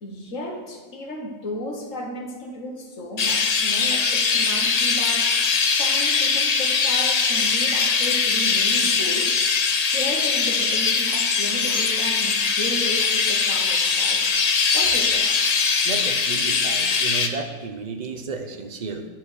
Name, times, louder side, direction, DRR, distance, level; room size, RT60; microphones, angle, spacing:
voice 1, 0.0-14.3 14.7-15.3, left 1 dB, 55° left, 1 dB, 1.6 m, -34 dB
Chirp tweet, 3.2-17.3, left 5 dB, 85° left, 0.3 m, -21 dB
voice 2, 15.8-19.1, right 4 dB, 45° right, 6 dB, 0.5 m, -32 dB
11.0 x 4.8 x 6.4 m, 1.5 s
omnidirectional pair, 1.6 m